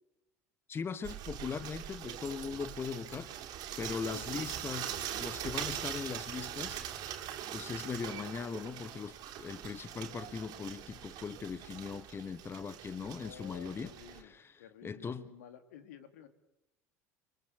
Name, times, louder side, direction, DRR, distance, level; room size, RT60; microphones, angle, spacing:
voice 1, 0.7-6.8 7.5-15.3, left 6 dB, 25° left, 1.2 m, -40 dB
sound 1, 1.0-14.2, right 10 dB, 50° right, 3.2 m, -42 dB
voice 2, 13.2-14.3 14.6-16.3, left 9 dB, 70° left, 2.6 m, -52 dB
29.5 x 23.5 x 8.3 m
figure-of-eight pair, 70°, 9 cm